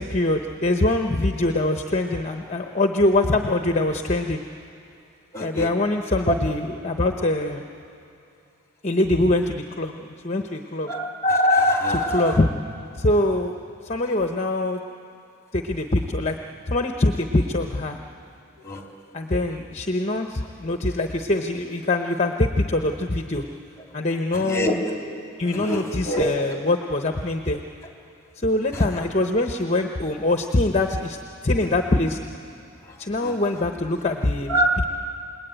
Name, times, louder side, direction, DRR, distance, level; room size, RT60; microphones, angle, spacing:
voice 1, 0.0-4.4 5.4-7.6 8.8-10.9 11.9-12.5 13.0-13.6 13.8-14.8 15.5-16.4 16.7-18.0 19.1-23.4 23.9-24.8 25.4-27.6 28.3-31.2 31.4-32.2 33.0-34.6, left 2 dB, 35° left, 5 dB, 0.9 m, -23 dB
voice 2, 5.3-5.7 6.3-6.4 10.9-12.4 18.6-18.8 24.4-24.8 25.5-26.3 33.2-33.3 34.5-34.9, equal, 15° left, 1 dB, 2.9 m, -23 dB
28.5 x 20.5 x 9.1 m, 2.6 s
head